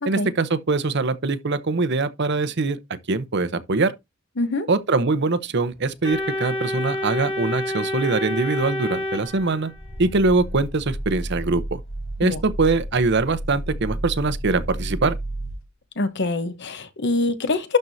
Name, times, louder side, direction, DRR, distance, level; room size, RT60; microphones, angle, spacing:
voice 1, 0.1-3.9 4.7-9.7 10.0-11.8 12.2-15.2, right 3 dB, 55° right, 0.8 m, -23 dB
voice 2, 4.4-4.7 12.2-12.4 16.0-17.8, left 3 dB, 60° left, 1.0 m, -24 dB
Organ, 6.0-10.0, left 1 dB, 25° left, 2.1 m, -28 dB
Growling, 9.3-15.6, right 1 dB, 75° left, 3.0 m, -32 dB
12.0 x 4.6 x 2.7 m
head